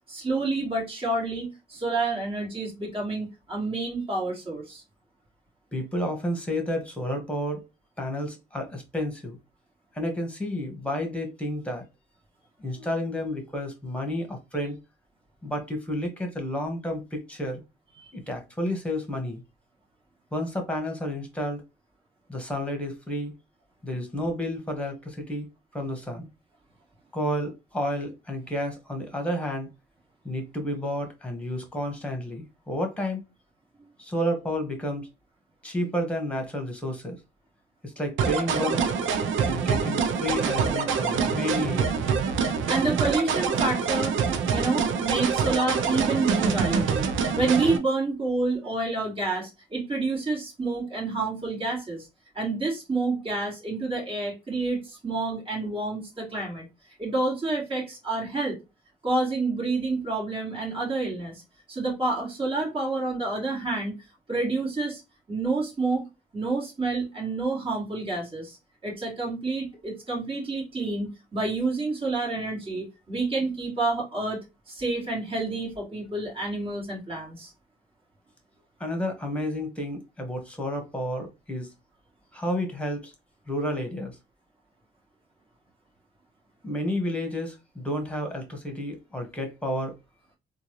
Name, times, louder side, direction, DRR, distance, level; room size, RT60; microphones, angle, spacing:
voice 1, 0.1-4.8 18.0-18.1 42.7-44.2 44.5-52.1 52.3-56.7 57.0-58.6 59.0-61.4 61.7-64.0 64.3-65.0 65.3-66.0 66.3-68.6 68.8-74.4 74.7-77.5, right 3 dB, 25° right, 2.4 m, -28 dB
voice 2, 5.7-7.6 8.0-9.4 9.9-11.8 12.6-14.8 15.4-17.6 18.1-19.4 20.3-21.6 22.3-23.3 23.8-25.5 25.7-26.3 27.1-29.7 30.2-33.2 34.0-35.1 35.6-37.2 37.8-38.8 39.4-42.0 78.8-81.7 82.3-83.1 83.5-84.2 86.6-90.0, left 1 dB, 5° left, 1.6 m, -31 dB
sound 1, 38.2-47.8, right 6 dB, 75° right, 0.7 m, -25 dB
3.7 x 2.6 x 3.0 m
cardioid pair, 90°, 20 cm